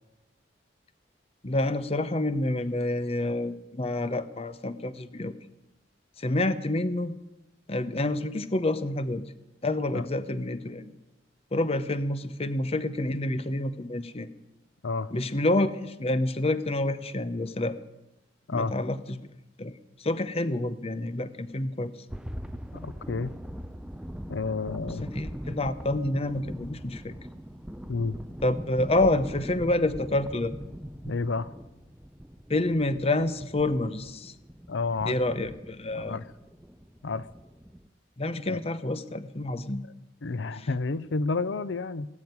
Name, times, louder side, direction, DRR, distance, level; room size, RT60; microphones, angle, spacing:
voice 1, 1.4-5.3 6.2-7.1 7.7-9.2 9.6-10.9 11.5-14.3 15.1-17.8 18.5-19.2 19.6-19.7 20.0-21.9 25.0-27.1 28.4-30.5 32.5-34.3 35.0-36.2 38.2-39.8 40.5-40.7, left 2 dB, 35° left, 13 dB, 0.8 m, -28 dB
sound 1, 22.1-37.9, equal, 5° right, 0.6 m, -41 dB
voice 2, 22.7-23.3 24.3-25.1 27.9-28.2 31.1-31.5 34.7-35.2 35.9-36.2 37.0-37.3 38.5-38.6 40.2-42.1, left 3 dB, 80° left, 16 dB, 0.6 m, -30 dB
18.5 x 7.2 x 9.5 m, 0.94 s
head